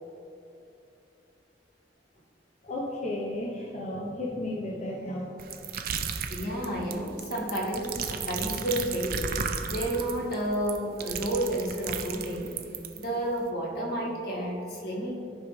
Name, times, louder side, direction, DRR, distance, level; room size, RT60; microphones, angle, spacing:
voice 1, 2.6-6.1 6.4-6.6, left 1 dB, 40° left, -3 dB, 1.0 m, -35 dB
sound 1, 5.4-13.0, right 6 dB, 55° right, 0.6 m, -34 dB
voice 2, 6.3-12.6 12.9-15.1, right 1 dB, 65° left, -3 dB, 1.8 m, -31 dB
14.0 x 5.1 x 3.3 m, 2.8 s
head